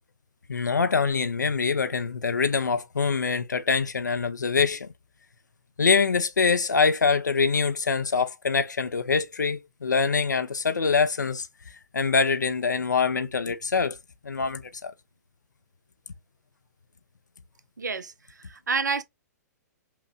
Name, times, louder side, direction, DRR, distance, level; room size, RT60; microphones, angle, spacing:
voice 1, 0.5-4.9 5.8-11.5 11.9-14.0 14.2-14.9, left 5 dB, 90° left, 0.5 m, -24 dB
voice 2, 17.8-19.0, right 5 dB, 85° right, 0.5 m, -29 dB
5.7 x 2.1 x 2.6 m
hypercardioid pair, 120°, 9 cm